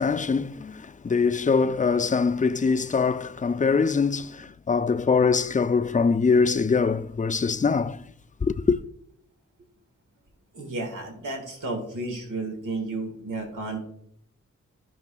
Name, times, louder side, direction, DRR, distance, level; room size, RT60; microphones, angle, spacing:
voice 1, 0.0-8.0 8.4-8.8, left 5 dB, 25° left, 0.4 m, -23 dB
voice 2, 10.5-13.9, right 2 dB, 85° right, 1.8 m, -32 dB
14.5 x 5.8 x 2.3 m
cardioid pair, 50°, 31 cm